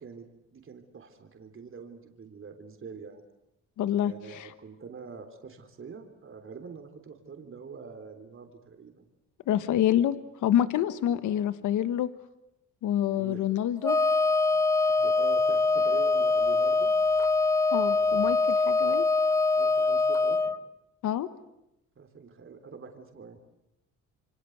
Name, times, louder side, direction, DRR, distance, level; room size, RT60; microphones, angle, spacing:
voice 1, 0.0-3.2 4.0-9.1 13.1-13.5 14.5-14.6 15.0-16.9 19.5-20.4 22.0-23.4, right 5 dB, 45° right, 5 dB, 3.7 m, -45 dB
voice 2, 3.8-4.5 9.5-10.1 10.4-12.1 12.8-14.0 17.7-19.1 21.0-21.3, left 11 dB, 80° left, 12 dB, 1.4 m, -27 dB
Wind instrument woodwind instrument, 13.8-20.6, left 3 dB, 10° left, 1.0 m, -24 dB
27.5 x 24.5 x 8.1 m, 0.88 s
cardioid pair, 90°, 30 cm